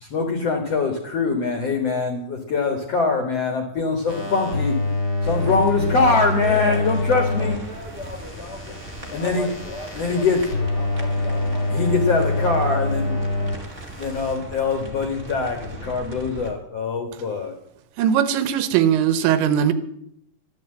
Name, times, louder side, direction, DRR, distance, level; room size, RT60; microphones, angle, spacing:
voice 1, 0.0-4.8 5.2-7.6 9.1-9.5 9.9-10.4 11.7-13.1 13.4-13.5 14.0-17.5, left 4 dB, 60° left, 4 dB, 1.7 m, -23 dB
sound 1, 4.1-7.6 7.9-13.6 13.9-14.3, left 2 dB, 15° left, 2.7 m, -26 dB
sound 2, 5.2-16.5, right 1 dB, 40° right, 1.0 m, -39 dB
voice 2, 5.8-12.8 13.1-13.6, left 3 dB, 90° left, 0 dB, 0.8 m, -36 dB
voice 3, 18.0-19.7, right 9 dB, 85° right, 13 dB, 3.3 m, -19 dB
13.5 x 10.5 x 7.8 m, 0.74 s
omnidirectional pair, 5.1 m